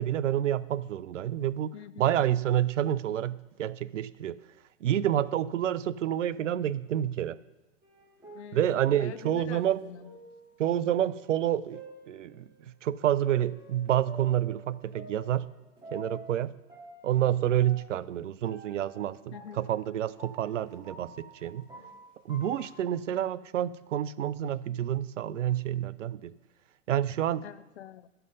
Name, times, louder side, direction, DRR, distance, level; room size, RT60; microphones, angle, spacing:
voice 1, 0.0-1.7 2.0-4.4 4.8-7.4 8.5-9.8 10.6-11.8 12.1-15.5 15.9-16.5 17.0-21.7 22.2-26.3 26.9-27.4, right 11 dB, 80° right, 18 dB, 0.5 m, -28 dB
voice 2, 1.7-2.1 8.3-10.1 19.3-19.6 27.4-28.1, left 10 dB, 65° left, 16 dB, 0.6 m, -45 dB
sound 1, 7.8-12.7 13.2-16.4 16.7-22.8, right 1 dB, 10° right, 2.7 m, -49 dB
12.0 x 5.6 x 5.4 m, 1.0 s
hypercardioid pair, 110°, 37 cm